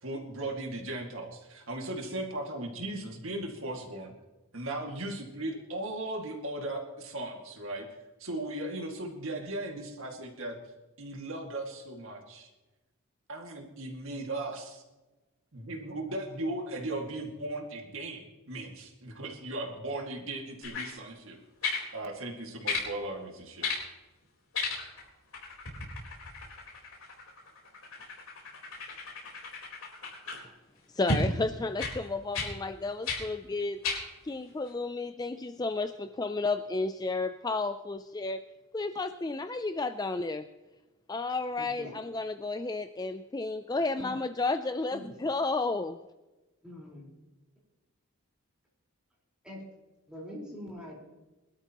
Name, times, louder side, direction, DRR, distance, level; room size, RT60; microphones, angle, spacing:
voice 1, 0.0-4.1 4.5-7.9 8.2-10.6 11.0-12.5 13.3-14.8 15.5-21.4 21.9-23.7, right 1 dB, 65° right, 2 dB, 2.2 m, -37 dB
sound 1, 20.6-20.9 21.6-21.9 22.7-22.9 23.6-23.8 24.5-25.0 25.3-30.4 31.1-31.3 31.8-32.0 32.3-32.5 33.0-33.2 33.8-34.0 34.7-34.8, left 3 dB, 70° left, 4.2 m, -34 dB
voice 2, 30.9-33.8 34.2-38.4 38.7-40.5 41.1-46.0, left 3 dB, 15° left, 9 dB, 0.4 m, -32 dB
voice 3, 41.6-42.0 44.0-44.1 44.9-45.3 46.6-47.1 49.4-49.6 50.1-50.9, left 1 dB, 5° right, -5 dB, 4.5 m, -44 dB
23.0 x 12.5 x 3.0 m, 1.1 s
head